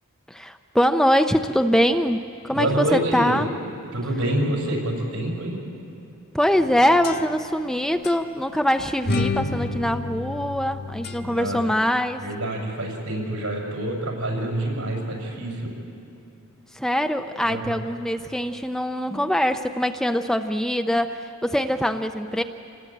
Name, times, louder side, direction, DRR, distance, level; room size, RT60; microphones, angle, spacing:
voice 1, 0.3-3.5 6.3-12.2 16.7-22.4, equal, ahead, 7 dB, 0.5 m, -23 dB
voice 2, 2.5-3.4 3.9-5.6 11.2-11.6 12.2-15.7 17.4-17.8, right 1 dB, 75° right, 0 dB, 6.4 m, -27 dB
sound 1, 6.5-7.7 8.0-8.2 9.0-11.6, left 2 dB, 45° left, 1.3 m, -30 dB
27.0 x 19.5 x 9.0 m, 2.7 s
head